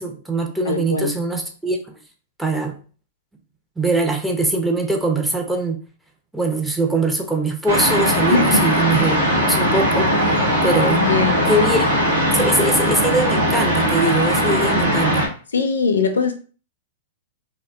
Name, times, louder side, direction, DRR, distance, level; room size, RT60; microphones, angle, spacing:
voice 1, 0.0-1.8 2.4-2.8 3.8-5.8 6.3-10.1 10.6-11.0 11.5-11.9 12.3-15.3, right 2 dB, 5° right, 0.5 m, -22 dB
voice 2, 0.6-1.2 8.3-8.8 10.9-11.5 15.5-16.3, left 4 dB, 80° left, 0.4 m, -21 dB
sound 1, 7.7-15.3, equal, 65° right, 0.7 m, -19 dB
2.5 x 2.1 x 2.4 m
hypercardioid pair, 105°, 0 cm